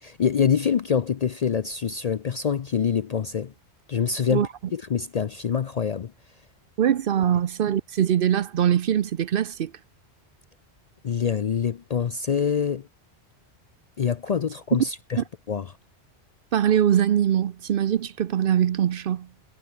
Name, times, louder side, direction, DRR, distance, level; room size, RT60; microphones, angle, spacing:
voice 1, 0.0-3.5 3.9-6.1 11.0-12.9 14.0-15.2 15.5-15.7, left 7 dB, 50° left, 0.5 m, -25 dB
voice 2, 6.8-9.7 15.2-15.3 16.5-19.3, right 10 dB, 60° right, 0.7 m, -22 dB
omnidirectional pair, 1.1 m